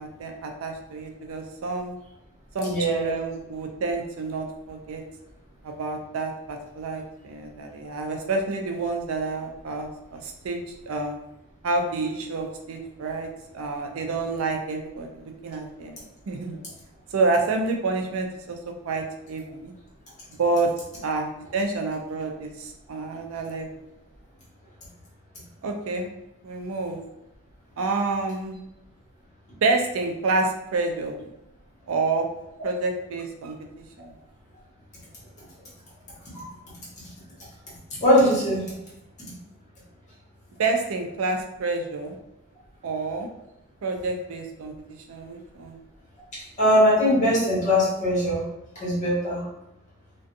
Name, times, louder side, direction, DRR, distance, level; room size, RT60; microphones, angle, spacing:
voice 1, 0.0-2.0 2.5-5.0 5.6-11.2 11.6-13.3 13.5-16.6 17.1-19.7 20.4-20.7 21.0-23.7 25.6-26.1 26.4-27.0 27.8-28.6 29.6-31.2 31.9-32.3 32.6-33.6 34.0-34.1 40.6-42.2 42.8-43.3 43.8-44.7 45.1-45.8, right 3 dB, 75° right, 3 dB, 0.4 m, -28 dB
voice 2, 2.6-3.1 36.3-36.5 38.0-38.7 46.3-48.4 48.7-49.4, equal, 35° left, -7 dB, 1.1 m, -21 dB
2.5 x 2.2 x 2.6 m, 0.87 s
head